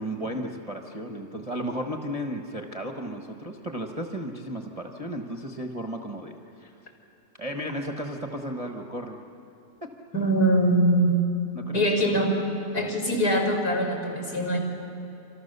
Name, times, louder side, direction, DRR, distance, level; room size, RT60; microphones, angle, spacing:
voice 1, 0.0-6.7 7.4-9.2 9.8-9.9 11.5-11.8, equal, 25° right, 2 dB, 1.1 m, -34 dB
voice 2, 10.1-11.2 11.7-12.3 12.7-14.6, right 1 dB, 55° left, 1 dB, 4.8 m, -23 dB
28.0 x 26.5 x 6.8 m, 2.9 s
omnidirectional pair, 2.0 m